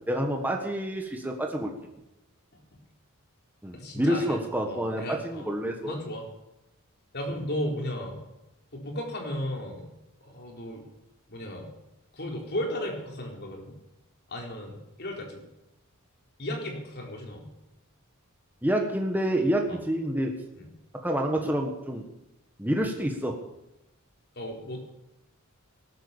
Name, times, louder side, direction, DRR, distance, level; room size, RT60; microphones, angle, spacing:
voice 1, 0.1-1.7 3.6-6.0 18.6-20.3 20.9-22.1 22.6-23.4, right 1 dB, 10° right, 2 dB, 1.5 m, -28 dB
voice 2, 3.7-4.4 4.7-5.5 5.8-6.2 7.1-8.2 8.7-9.9 10.2-10.8 11.3-11.7 12.1-13.7 14.3-15.4 16.4-17.5 19.7-19.8 20.5-20.7 24.4-25.0, left 1 dB, 50° left, 1 dB, 4.0 m, -35 dB
19.0 x 10.5 x 7.1 m, 0.91 s
head